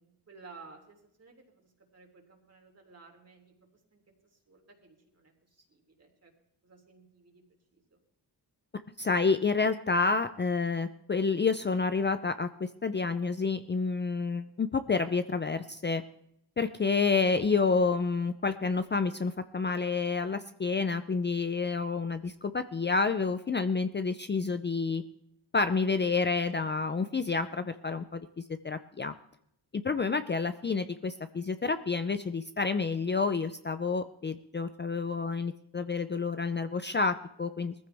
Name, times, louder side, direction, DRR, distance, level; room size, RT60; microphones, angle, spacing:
voice 1, 0.0-3.5 3.9-4.0 4.3-6.3 6.6-7.4 7.7-8.0, right 4 dB, 40° right, 2 dB, 3.3 m, -55 dB
voice 2, 9.0-16.0 16.6-25.0 25.5-29.1 29.7-37.7, left 4 dB, 25° left, 10 dB, 0.5 m, -29 dB
21.0 x 14.5 x 3.5 m, 0.74 s
wide cardioid pair, 145°, 40 cm